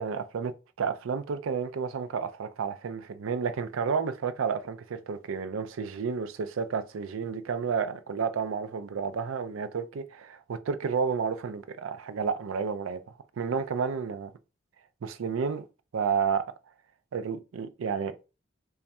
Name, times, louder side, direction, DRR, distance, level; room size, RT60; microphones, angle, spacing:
voice 1, 0.0-13.0 13.4-14.3 15.0-15.6 15.9-16.5 17.1-18.2, right 6 dB, 80° right, 0.4 m, -31 dB
3.4 x 2.3 x 4.1 m
head